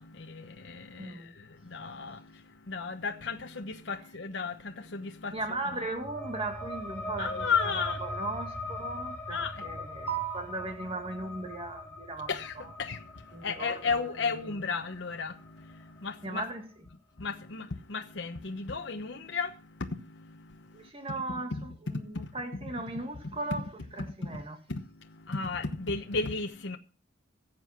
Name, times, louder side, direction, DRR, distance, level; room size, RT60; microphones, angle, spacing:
voice 1, 0.0-5.6 7.2-8.0 9.3-9.8 12.3-16.4 17.2-20.9 21.5-21.7 21.9-22.3 24.2-24.4 24.7-26.8, left 5 dB, 65° left, 1.0 m, -35 dB
voice 2, 0.9-1.3 5.3-12.3 12.6-12.7 13.3-14.0 14.3-14.5 16.2-16.6 20.7-23.7 24.0-24.6, right 3 dB, 30° right, 2.3 m, -37 dB
sound 1, 5.4-16.5, left 2 dB, 10° left, 6.2 m, -41 dB
16.0 x 7.6 x 5.9 m
head